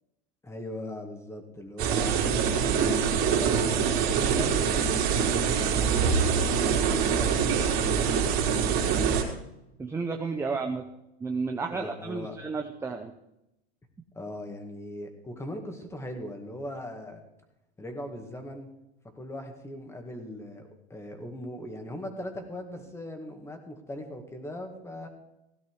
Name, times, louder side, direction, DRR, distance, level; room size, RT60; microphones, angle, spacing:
voice 1, 0.4-2.9 3.7-9.1 11.7-12.4 14.1-17.2 17.8-18.7 19.2-25.1, left 1 dB, 10° left, 4 dB, 2.2 m, -39 dB
sound 1, 1.8-9.2, right 7 dB, 40° right, 3.8 m, -24 dB
voice 2, 9.8-10.9 11.2-13.1, right 4 dB, 10° right, 5 dB, 0.7 m, -32 dB
17.0 x 11.0 x 4.8 m, 0.87 s
supercardioid pair, 140°, 32 cm